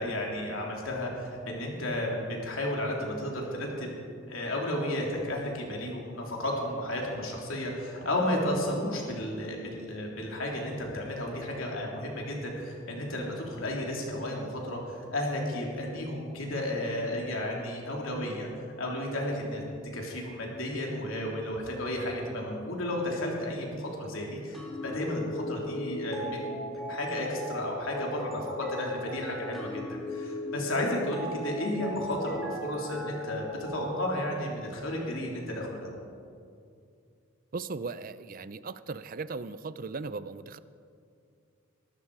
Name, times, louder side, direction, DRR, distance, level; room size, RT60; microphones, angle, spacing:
voice 1, 0.0-3.9 4.3-18.5 18.8-19.6 19.9-35.9, left 1 dB, 80° left, -1 dB, 3.4 m, -33 dB
sound 1, 24.5-33.9, left 1 dB, ahead, 2.8 m, -38 dB
voice 2, 37.5-40.6, right 4 dB, 45° right, 15 dB, 0.5 m, -37 dB
21.5 x 13.0 x 4.9 m, 2.4 s
head